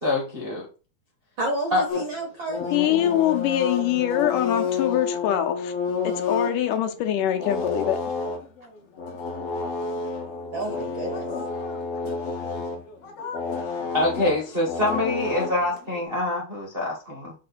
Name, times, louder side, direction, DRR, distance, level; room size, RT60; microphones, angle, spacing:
voice 1, 0.0-0.6 1.7-1.8 13.9-17.3, left 2 dB, 50° right, 0.6 m, -25 dB
voice 2, 1.4-2.8 10.5-11.3, right 1 dB, 70° right, 1.1 m, -30 dB
sound 1, 1.9-16.0, left 4 dB, 60° left, 1.8 m, -30 dB
voice 3, 2.7-5.7 6.0-8.0, left 11 dB, 85° left, 2.4 m, -24 dB
6.5 x 3.7 x 4.2 m
omnidirectional pair, 3.6 m